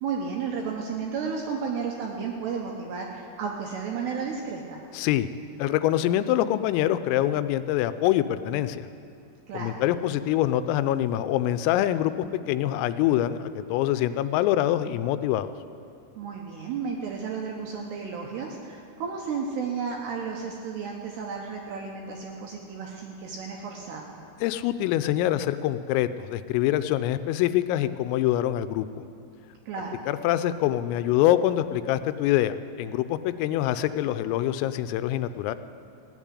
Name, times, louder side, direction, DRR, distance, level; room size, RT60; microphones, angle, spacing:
voice 1, 0.0-4.8 9.5-9.8 16.2-24.2 29.7-30.0, right 5 dB, 75° right, 0 dB, 2.6 m, -33 dB
voice 2, 4.9-5.3 5.6-8.9 9.5-15.5 24.4-29.0 30.1-35.6, left 13 dB, 85° left, 12 dB, 3.2 m, -25 dB
16.5 x 7.3 x 9.8 m, 2.5 s
omnidirectional pair, 5.9 m